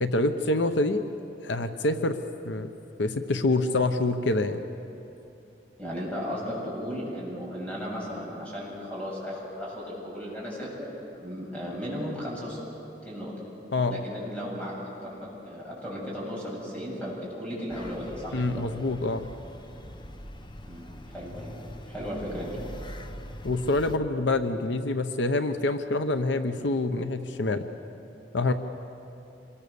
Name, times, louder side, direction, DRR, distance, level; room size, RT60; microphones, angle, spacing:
voice 1, 0.0-1.0 1.4-2.2 2.4-2.7 3.0-4.6 13.7-14.0 18.3-19.3 23.4-27.7 28.3-28.5, left 2 dB, 85° left, 9 dB, 0.9 m, -26 dB
voice 2, 5.8-10.9 11.1-12.6 13.0-13.3 13.9-18.6 20.7-21.6 21.9-22.6, equal, 5° left, -5 dB, 7.9 m, -35 dB
sound 1, 17.7-24.0, left 1 dB, 25° left, 0.9 m, -42 dB
26.0 x 21.5 x 7.0 m, 2.8 s
head